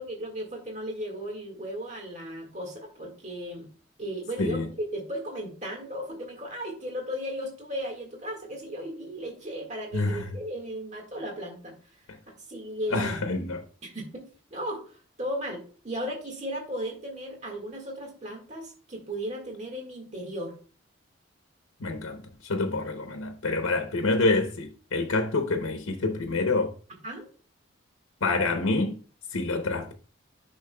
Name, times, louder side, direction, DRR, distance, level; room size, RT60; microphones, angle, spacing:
voice 1, 0.0-3.7 4.0-11.7 12.3-13.1 13.5-20.5 27.0-27.3, equal, 35° right, 1.7 m, -36 dB
voice 2, 9.9-10.3 12.9-13.6 21.8-26.7 28.2-29.0 29.3-29.9, left 3 dB, 90° left, 0.8 m, -27 dB
10.5 x 5.6 x 2.2 m
head